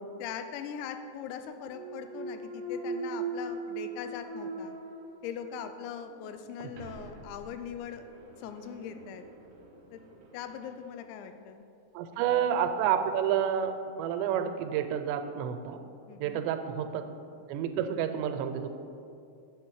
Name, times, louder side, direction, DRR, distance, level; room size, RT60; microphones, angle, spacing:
voice 1, 0.2-4.8 5.2-8.0 8.4-9.2 9.9-10.0 10.3-11.6 16.1-16.5, left 8 dB, 90° left, 8 dB, 2.9 m, -41 dB
Thump thud, 1.6-5.6 6.1-10.8, right 3 dB, 65° right, 2.2 m, -40 dB
voice 2, 11.9-13.7 14.0-15.8 16.2-17.0 17.5-18.7, right 9 dB, 85° right, 8 dB, 2.8 m, -29 dB
8.5 x 7.5 x 4.7 m, 2.6 s
omnidirectional pair, 5.0 m